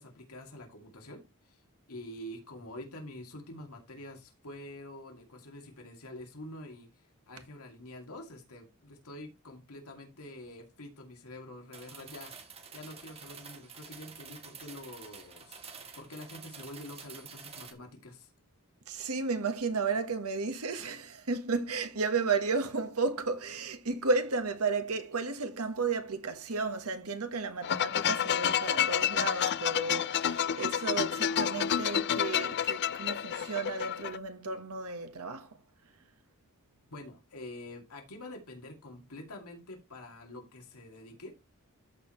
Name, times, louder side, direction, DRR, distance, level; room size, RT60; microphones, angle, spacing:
voice 1, 0.0-1.6 1.9-18.3 36.9-41.3, left 1 dB, 85° left, 2.4 m, -47 dB
sound 1, 11.7-17.7, right 6 dB, 30° right, 1.3 m, -49 dB
voice 2, 18.9-35.6, right 4 dB, 80° right, 1.4 m, -33 dB
sound 2, 27.6-34.2, left 9 dB, 50° left, 0.4 m, -29 dB
13.5 x 4.7 x 3.2 m
head